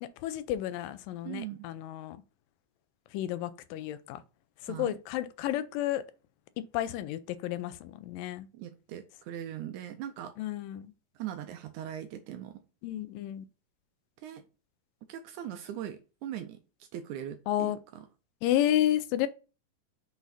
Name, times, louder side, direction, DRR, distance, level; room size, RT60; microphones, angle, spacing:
voice 1, 0.0-2.2 3.1-4.2 4.6-6.0 6.7-8.5 10.4-10.9 12.8-13.5 17.5-17.8 18.4-19.3, left 12 dB, 85° left, 2.3 m, -31 dB
voice 2, 1.2-1.7 4.7-4.9 8.5-10.5 11.2-12.6 14.2-14.4 15.1-16.6 16.9-18.1, right 11 dB, 80° right, 1.8 m, -40 dB
6.1 x 4.0 x 4.1 m
omnidirectional pair, 3.9 m